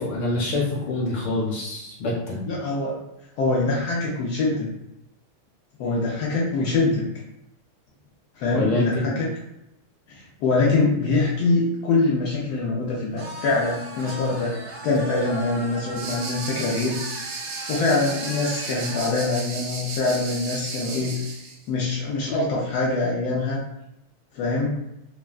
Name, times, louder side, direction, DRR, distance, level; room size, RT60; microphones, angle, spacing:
voice 1, 0.0-2.4 8.5-9.1, left 2 dB, 65° left, -4 dB, 1.5 m, -26 dB
voice 2, 2.5-3.0 3.4-4.7 5.8-7.0 8.4-9.3 10.1-17.3 17.7-21.2 21.7-23.6 24.3-24.8, left 3 dB, 85° left, -4 dB, 0.8 m, -24 dB
sound 1, 13.2-19.1, right 2 dB, 60° right, 0.7 m, -38 dB
sound 2, 16.0-21.6, right 3 dB, 75° right, 1.4 m, -34 dB
3.5 x 2.2 x 2.3 m, 0.86 s
omnidirectional pair, 2.3 m